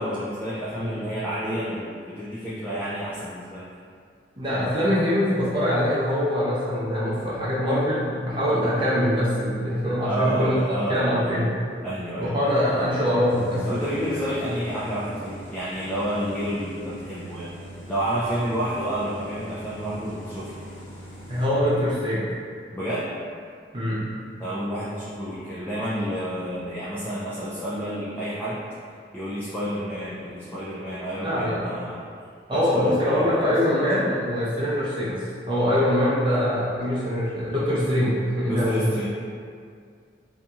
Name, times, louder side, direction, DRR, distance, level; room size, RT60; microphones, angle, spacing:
voice 1, 0.0-3.7 10.0-11.4 11.8-12.3 13.6-17.5 17.9-20.5 22.7-23.1 24.4-28.6 29.1-32.0 32.5-33.4 38.5-39.0, equal, 10° left, -9 dB, 0.3 m, -30 dB
voice 2, 4.4-11.5 12.2-13.6 21.3-22.2 23.7-24.1 31.2-31.7 32.5-35.2 35.5-39.0, equal, 30° right, -9 dB, 0.7 m, -23 dB
sound 1, 13.3-21.5, right 1 dB, 75° left, 1.0 m, -41 dB
2.7 x 2.6 x 2.3 m, 2.2 s
head